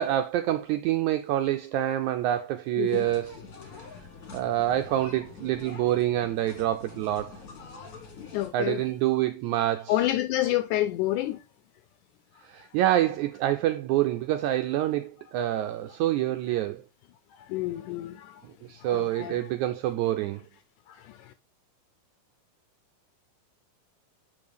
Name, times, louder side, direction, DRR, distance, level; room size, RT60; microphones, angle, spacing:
voice 1, 0.0-3.4 4.3-7.4 8.5-9.9 12.4-16.8 18.6-20.4, right 13 dB, 85° right, 1.7 m, -27 dB
voice 2, 2.8-3.1 8.2-8.8 9.9-11.4 17.3-18.4 18.8-19.4 20.9-21.3, left 14 dB, 80° left, 1.8 m, -29 dB
sound 1, 2.9-8.5, left 4 dB, 45° left, 1.2 m, -45 dB
6.9 x 5.3 x 3.4 m
omnidirectional pair, 3.8 m